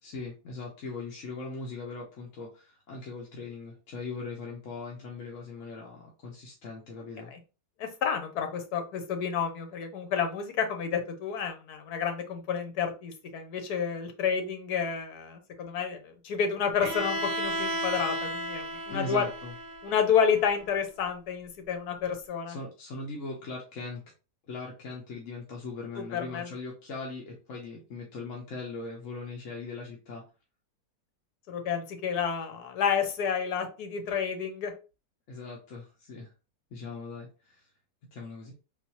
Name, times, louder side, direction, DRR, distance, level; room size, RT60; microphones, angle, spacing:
voice 1, 0.0-7.3 18.9-19.5 22.5-24.0 24.5-30.2 35.3-36.3 36.7-37.7 38.1-38.5, left 3 dB, 60° left, -2 dB, 1.1 m, -40 dB
voice 2, 7.8-19.2 19.8-22.6 26.1-26.5 31.5-34.7, left 7 dB, 80° left, 5 dB, 1.3 m, -30 dB
Bowed string instrument, 16.8-20.7, right 1 dB, 65° right, 0.9 m, -34 dB
3.8 x 2.5 x 2.7 m, 0.32 s
omnidirectional pair, 1.6 m